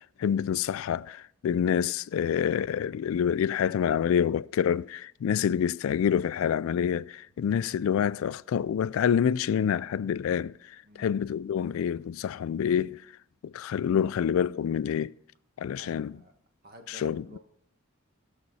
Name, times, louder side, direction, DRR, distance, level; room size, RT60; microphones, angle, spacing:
voice 1, 0.0-10.6 11.0-13.0 13.4-15.1 15.6-16.2 16.9-17.4, left 8 dB, 75° left, 0.3 m, -27 dB
voice 2, 15.8-16.3 16.6-17.4, right 1 dB, 45° right, 1.4 m, -50 dB
17.0 x 6.7 x 4.1 m
head